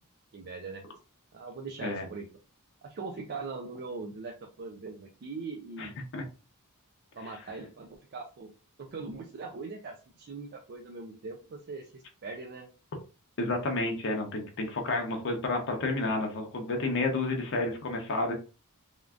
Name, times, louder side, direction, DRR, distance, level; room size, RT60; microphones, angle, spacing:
voice 1, 0.3-0.8 1.3-2.3 2.8-5.9 7.2-8.5 8.8-12.7, right 4 dB, 45° right, 3 dB, 0.4 m, -41 dB
voice 2, 5.8-6.2 13.4-18.3, left 2 dB, 55° left, 2 dB, 0.6 m, -30 dB
3.5 x 2.5 x 2.3 m, 0.34 s
head